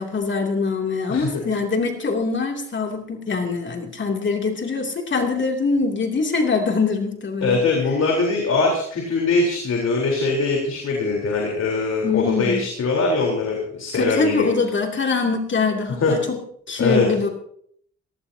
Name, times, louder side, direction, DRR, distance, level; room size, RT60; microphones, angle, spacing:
voice 1, 0.0-7.6 12.0-12.6 13.9-16.4 16.7-17.3, left 4 dB, 40° left, 2 dB, 2.8 m, -23 dB
voice 2, 7.4-14.4 16.0-16.1 16.8-17.1, left 3 dB, 55° left, -1 dB, 4.0 m, -22 dB
18.0 x 17.0 x 2.8 m, 0.64 s
cardioid pair, 90°, 30 cm